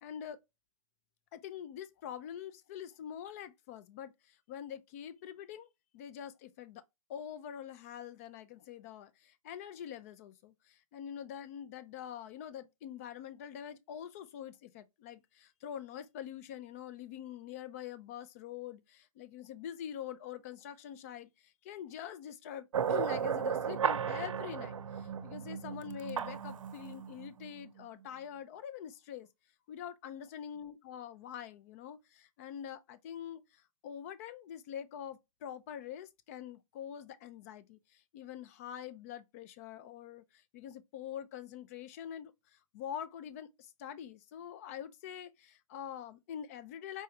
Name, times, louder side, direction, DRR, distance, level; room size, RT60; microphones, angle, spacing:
voice 1, 0.0-0.4 1.3-5.7 5.9-6.8 7.1-29.3 29.7-47.0, left 9 dB, 25° left, 0.4 m, -45 dB
sound 1, 22.7-28.0, right 8 dB, 60° right, 0.7 m, -35 dB
4.8 x 3.1 x 2.7 m
hypercardioid pair, 140°, 18 cm